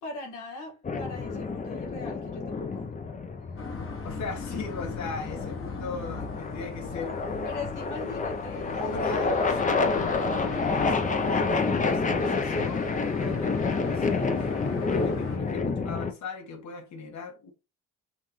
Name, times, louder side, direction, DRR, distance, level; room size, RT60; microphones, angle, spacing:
voice 1, 0.0-2.9 5.7-6.2 7.4-9.4, left 3 dB, 85° left, 1.9 m, -41 dB
sound 1, 0.8-16.1, left 4 dB, 25° left, 0.7 m, -29 dB
sound 2, 3.6-15.4, left 4 dB, 45° left, 1.2 m, -37 dB
voice 2, 4.0-7.2 8.7-14.6 14.9-17.5, left 4 dB, 65° left, 1.4 m, -39 dB
5.7 x 2.5 x 3.1 m
cardioid pair, 90°, 30 cm